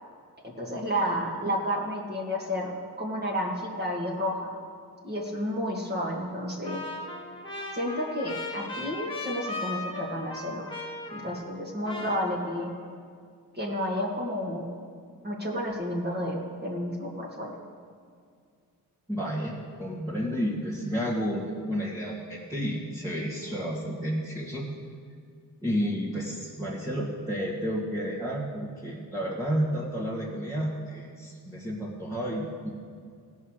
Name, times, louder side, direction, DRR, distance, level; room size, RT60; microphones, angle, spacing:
voice 1, 0.6-4.5 5.0-6.8 7.7-10.7 11.1-12.7 13.5-14.7 15.2-17.5, equal, 25° right, -2 dB, 2.3 m, -31 dB
Trumpet, 6.6-11.6 11.8-12.9, left 2 dB, 15° left, 2.3 m, -38 dB
voice 2, 19.1-19.5 19.8-24.7 25.6-32.7, equal, 10° right, -6 dB, 2.0 m, -31 dB
17.0 x 5.6 x 6.5 m, 2.2 s
cardioid pair, 80°, 37 cm